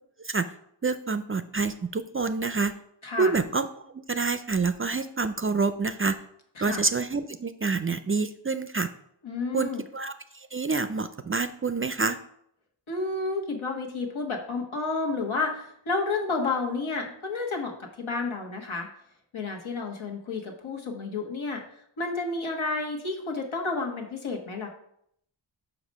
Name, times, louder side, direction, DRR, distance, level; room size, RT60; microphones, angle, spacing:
voice 1, 0.8-2.8 3.2-3.7 3.9-6.2 6.6-8.9 9.5-12.2, right 4 dB, 30° right, 12 dB, 0.3 m, -27 dB
voice 2, 9.2-9.8 12.9-18.9 19.3-21.6 22.0-24.7, left 3 dB, 85° left, 2 dB, 1.5 m, -31 dB
6.0 x 4.9 x 5.4 m, 0.70 s
wide cardioid pair, 85°, 47 cm